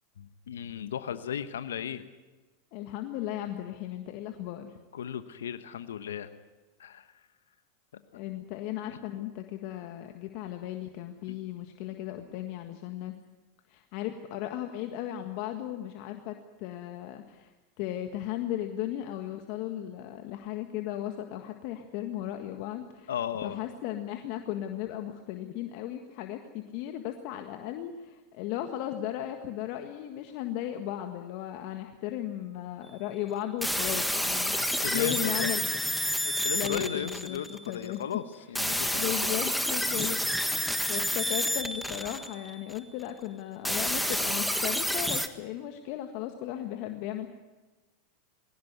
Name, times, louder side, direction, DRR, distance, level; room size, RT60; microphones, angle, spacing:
voice 1, 0.2-2.0 4.9-6.4 6.8-7.2 8.9-9.0 11.3-11.4 23.1-23.6 34.6-35.6 36.2-38.2 38.5-39.5 39.9-40.1, left 9 dB, 80° left, 11 dB, 1.1 m, -36 dB
voice 2, 2.7-4.8 8.1-13.1 13.7-17.5 17.8-23.1 23.4-34.6 34.8-35.6 36.5-38.0 39.0-40.2 40.9-47.3, left 12 dB, 60° left, 5 dB, 1.7 m, -36 dB
sound 1, 33.6-37.8 38.5-42.8 43.6-45.3, equal, ahead, 1.6 m, -29 dB
20.5 x 17.5 x 9.5 m, 1.2 s
hypercardioid pair, 95°, 0 cm